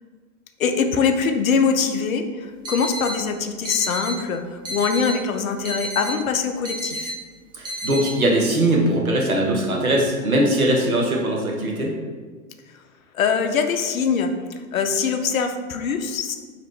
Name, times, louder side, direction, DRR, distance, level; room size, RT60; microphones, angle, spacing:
voice 1, 0.6-7.1 13.1-16.3, left 5 dB, 75° left, 7 dB, 0.5 m, -23 dB
sound 1, 2.6-3.1 3.6-4.2 4.6-5.2 5.6-6.2 6.6-7.2 7.6-8.1, equal, 10° right, 0.5 m, -31 dB
voice 2, 7.5-11.9, right 1 dB, 90° right, 0 dB, 0.8 m, -21 dB
3.0 x 2.9 x 4.4 m, 1.5 s
figure-of-eight pair, 100°, 41 cm